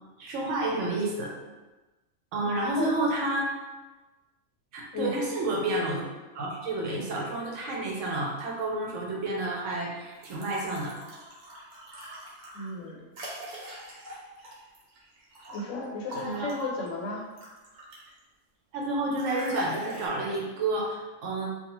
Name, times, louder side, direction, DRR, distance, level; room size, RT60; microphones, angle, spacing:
voice 1, 0.2-1.3 2.3-3.5 4.7-6.0 6.3-11.0 16.1-16.5 18.7-21.5, right 2 dB, 75° right, -2 dB, 0.9 m, -30 dB
voice 2, 2.4-2.9 4.9-5.2 12.5-13.1 15.5-17.3, left 2 dB, 80° left, -2 dB, 1.0 m, -34 dB
sound 1, 10.1-15.6 16.1-18.2 19.2-20.1, equal, 50° right, 0.6 m, -41 dB
2.3 x 2.3 x 2.9 m, 1.2 s
omnidirectional pair, 1.3 m